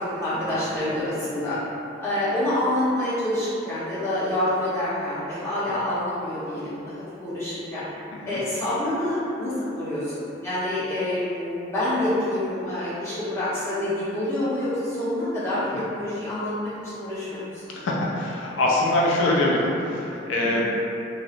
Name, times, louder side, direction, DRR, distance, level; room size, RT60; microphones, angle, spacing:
voice 1, 0.1-1.6 2.0-7.8 8.2-15.7 15.9-17.6 20.4-20.5, left 1 dB, 15° left, -14 dB, 0.8 m, -27 dB
voice 2, 8.1-8.4 17.7-20.6, left 1 dB, 90° left, -3 dB, 0.3 m, -24 dB
2.6 x 2.0 x 2.5 m, 2.8 s
head